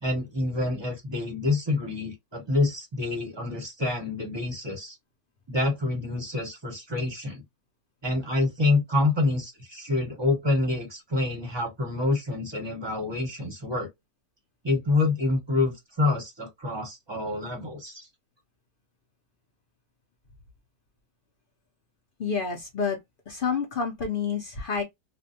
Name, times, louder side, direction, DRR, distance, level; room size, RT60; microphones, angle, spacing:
voice 1, 0.0-5.0 5.5-7.4 8.0-13.9 14.6-18.1, left 2 dB, 25° right, 0.7 m, -27 dB
voice 2, 22.2-23.0 23.3-24.8, left 5 dB, 60° left, 0.6 m, -28 dB
2.5 x 2.1 x 2.6 m
omnidirectional pair, 1.6 m